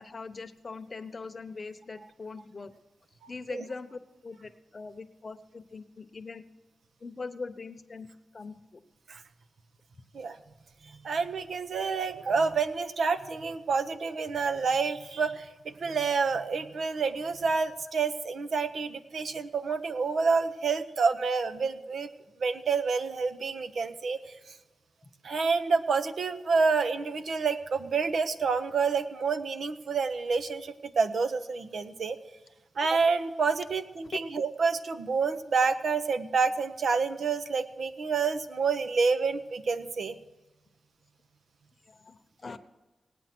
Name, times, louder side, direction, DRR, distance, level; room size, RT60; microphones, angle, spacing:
voice 1, 0.0-2.7 3.3-6.4 7.0-8.1 8.3-8.8 41.9-42.6, left 4 dB, 35° left, 8 dB, 0.9 m, -42 dB
voice 2, 3.2-3.6 9.1-9.2 10.1-10.4 11.0-22.1 22.4-24.5 25.2-32.2 32.8-40.2, right 5 dB, 65° right, 10 dB, 0.9 m, -28 dB
18.0 x 9.0 x 6.1 m, 1.1 s
wide cardioid pair, 95°, 0 cm